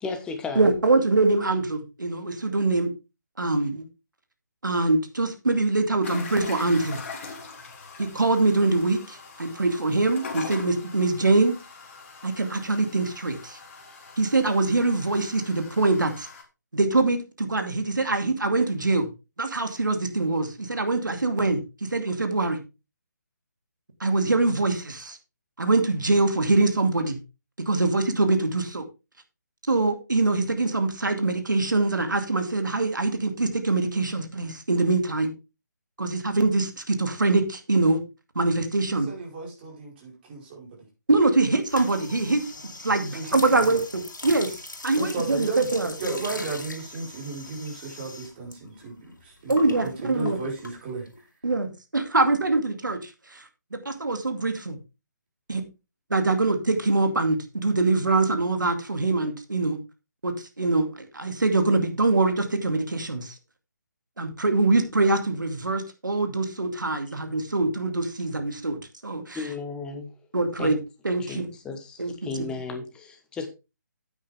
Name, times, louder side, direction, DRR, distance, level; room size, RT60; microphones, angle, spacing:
voice 1, 0.0-0.7 69.3-70.2 70.6-70.7 71.2-73.5, left 4 dB, 10° left, 1.3 m, -34 dB
voice 2, 0.6-2.9 3.4-3.9 4.6-7.0 8.0-11.6 12.2-13.6 14.2-16.3 16.7-19.1 19.4-22.6 24.0-25.2 25.6-27.2 27.6-28.8 29.7-35.3 36.0-38.0 38.4-39.1 41.1-42.4 42.8-45.9 49.5-50.4 51.4-53.4 53.7-54.8 55.5-55.6 56.1-59.8 60.2-60.9 61.1-63.3 64.2-69.4 70.3-70.8 71.0-71.5 72.0-72.1, right 3 dB, 80° right, 2.3 m, -24 dB
sound 1, 6.0-16.4, left 4 dB, 45° left, 2.8 m, -42 dB
voice 3, 38.9-40.8 43.1-43.8 44.9-45.7 46.0-51.3, right 3 dB, 30° right, 4.7 m, -34 dB
sound 2, 41.6-48.6 48.8-51.2, left 2 dB, 85° left, 2.6 m, -40 dB
9.7 x 8.9 x 3.4 m
figure-of-eight pair, 150°, 10 cm